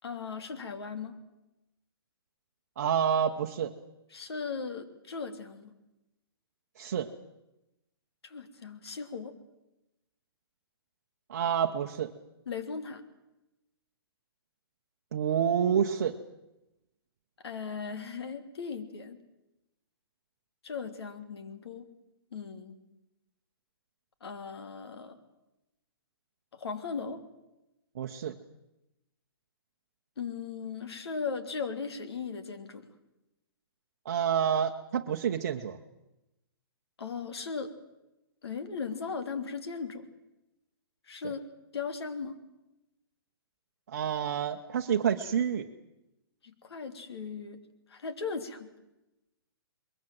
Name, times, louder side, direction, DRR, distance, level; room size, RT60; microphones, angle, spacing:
voice 1, 0.0-1.2 4.1-5.7 8.2-9.3 12.5-13.0 17.4-19.2 20.6-21.9 22.3-22.8 24.2-25.2 26.5-27.2 30.2-32.9 37.0-37.7 38.4-40.0 41.1-41.4 41.7-42.4 46.4-47.6 47.9-48.7, left 5 dB, 85° left, 9 dB, 3.0 m, -37 dB
voice 2, 2.8-3.7 6.8-7.1 11.3-12.1 15.1-16.2 27.9-28.4 34.0-35.8 41.2-41.3 43.9-45.7, right 8 dB, 40° right, 3 dB, 0.9 m, -28 dB
22.5 x 21.5 x 7.7 m, 0.94 s
hypercardioid pair, 180°, 13 cm